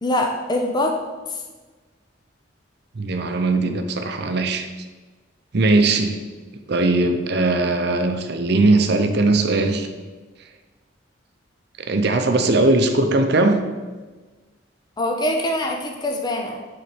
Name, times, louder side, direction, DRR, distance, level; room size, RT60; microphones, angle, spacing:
voice 1, 0.0-1.0 1.3-1.4 3.6-3.7 15.0-16.6, left 1 dB, 20° left, 2 dB, 0.6 m, -23 dB
voice 2, 2.9-4.7 5.5-6.2 6.7-9.9 11.8-13.6, right 2 dB, 60° right, 6 dB, 0.6 m, -19 dB
6.4 x 3.9 x 6.0 m, 1.3 s
head